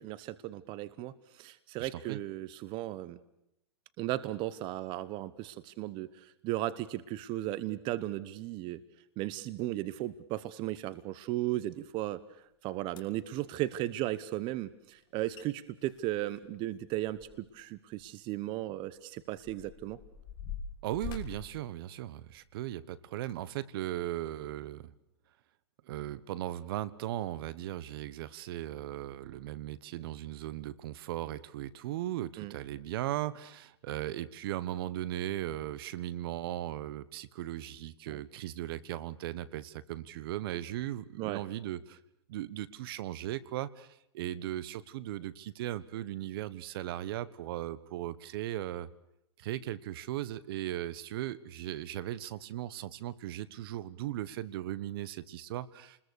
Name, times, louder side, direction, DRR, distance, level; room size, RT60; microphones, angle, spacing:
voice 1, 0.0-3.2 4.0-8.8 9.2-12.2 12.6-20.0 32.4-32.5 38.1-38.2 41.2-41.4, right 15 dB, 35° right, 17 dB, 1.0 m, -36 dB
voice 2, 1.8-2.2 20.8-24.9 25.8-42.0 42.3-48.9 49.4-56.0, right 13 dB, 55° right, 19 dB, 1.2 m, -37 dB
sound 1, 12.4-12.5 12.9-13.3 15.0-15.1 15.3-15.5 15.8-17.6 17.9-18.1 18.8-22.5 23.1-23.4 24.0-24.1, left 6 dB, 30° left, 3.2 m, -45 dB
29.0 x 21.0 x 6.5 m, 0.80 s
hypercardioid pair, 140°, 14 cm